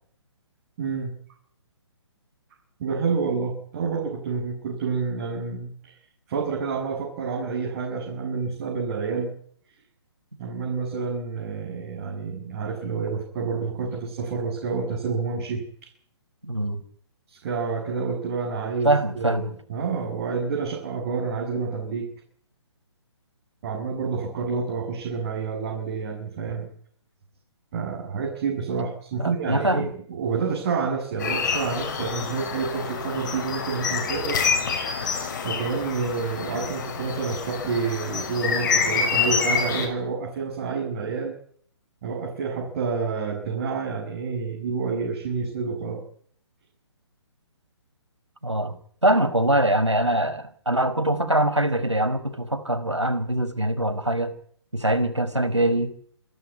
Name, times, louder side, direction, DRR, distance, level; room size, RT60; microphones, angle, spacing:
voice 1, 0.8-1.2 2.8-5.9 6.3-9.3 10.4-15.6 17.3-22.1 23.6-26.7 27.7-34.4 35.4-41.3 42.0-46.0, right 5 dB, 35° right, -1 dB, 7.3 m, -28 dB
voice 2, 16.4-16.8 18.8-19.5 29.2-29.9 48.4-48.7 49.0-54.3 54.7-55.9, right 1 dB, 85° right, 9 dB, 5.1 m, -23 dB
sound 1, 31.2-39.9, left 5 dB, 40° left, 6.0 m, -27 dB
29.0 x 12.5 x 9.7 m, 0.63 s
figure-of-eight pair, 135°, 15 cm